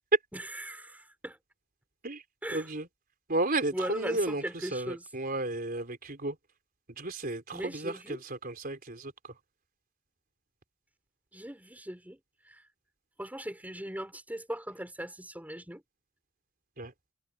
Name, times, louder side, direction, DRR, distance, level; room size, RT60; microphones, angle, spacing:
voice 1, 0.3-1.4 2.4-2.7 3.7-5.1 7.5-8.2 11.3-12.2 12.4-12.6 13.2-15.8, right 1 dB, 10° right, 5.2 m, -39 dB
voice 2, 2.5-2.9 3.3-4.4 4.7-6.4 7.0-9.1 16.8-16.9, right 2 dB, 45° right, 4.2 m, -33 dB
head